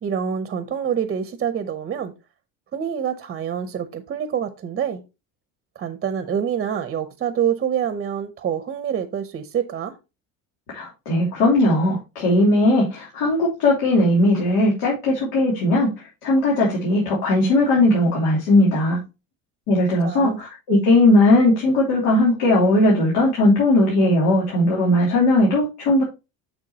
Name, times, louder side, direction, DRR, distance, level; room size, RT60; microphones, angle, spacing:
voice 1, 0.0-2.1 2.7-5.0 5.8-10.0 20.0-20.4, right 8 dB, 30° right, 0.7 m, -26 dB
voice 2, 10.7-19.0 19.7-26.0, left 1 dB, 90° left, 3.1 m, -18 dB
7.0 x 6.7 x 2.8 m
cardioid pair, 140°, 35 cm